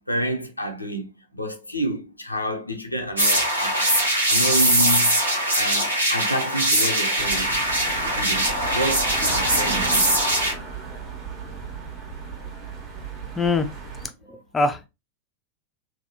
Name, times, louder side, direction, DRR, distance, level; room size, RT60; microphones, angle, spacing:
voice 1, 0.1-3.9 4.3-5.2 5.5-7.6 7.8-10.9, right 1 dB, 85° left, 0.5 m, -29 dB
sound 1, 3.2-10.5, right 1 dB, 80° right, 0.9 m, -21 dB
sound 2, 7.2-14.1, right 4 dB, 30° right, 1.1 m, -34 dB
voice 2, 13.4-13.7 14.0-14.9, left 3 dB, 15° left, 0.4 m, -24 dB
3.3 x 2.1 x 2.6 m
figure-of-eight pair, 90°, 0 cm